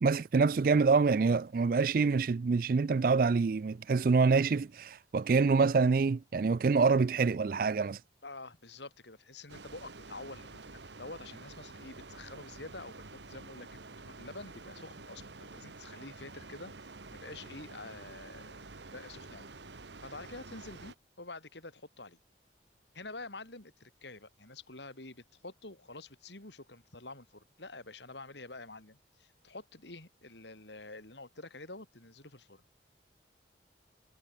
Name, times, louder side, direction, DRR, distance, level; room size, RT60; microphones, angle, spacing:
voice 1, 0.0-8.0, right 4 dB, 50° right, 0.4 m, -26 dB
voice 2, 8.2-16.7 17.1-18.6 18.9-19.5 20.0-22.2 22.9-32.8, left 2 dB, 75° left, 4.6 m, -48 dB
sound 1, 9.5-20.9, right 3 dB, 75° right, 1.5 m, -49 dB
head